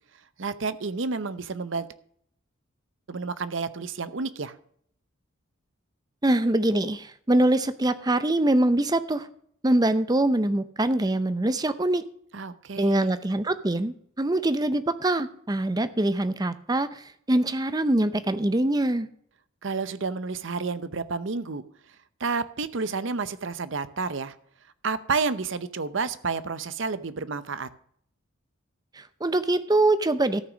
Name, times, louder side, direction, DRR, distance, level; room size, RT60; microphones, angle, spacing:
voice 1, 0.4-1.9 3.1-4.5 12.3-13.1 19.6-21.6 22.2-24.3 24.8-27.7, right 4 dB, 60° right, 14 dB, 0.7 m, -30 dB
voice 2, 6.2-9.3 9.6-12.0 12.8-16.9 17.3-19.1 29.0-30.4, right 1 dB, 20° right, 12 dB, 0.6 m, -23 dB
13.5 x 6.1 x 6.2 m, 0.64 s
head